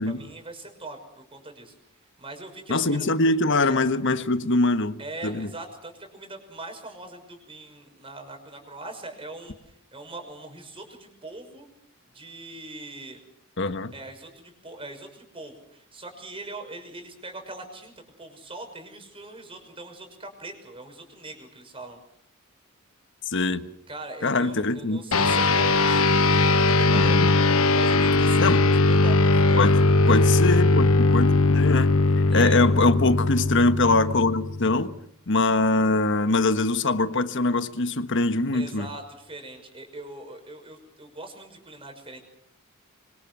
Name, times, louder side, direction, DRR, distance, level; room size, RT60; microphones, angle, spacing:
voice 1, 0.0-1.7 2.2-3.1 3.6-3.7 5.0-11.7 12.1-13.2 13.9-22.0 23.9-26.4 26.9-29.8 32.3-32.7 38.5-42.2, right 2 dB, 25° right, 6.1 m, -41 dB
voice 2, 2.7-5.5 13.6-13.9 23.3-23.6 24.2-25.0 26.9-27.3 28.4-28.6 29.6-29.7 30.1-32.0 32.3-34.9 35.3-38.9, left 2 dB, 60° left, 1.4 m, -23 dB
sound 1, 25.1-34.9, left 3 dB, 85° left, 1.3 m, -20 dB
25.5 x 25.0 x 6.3 m
head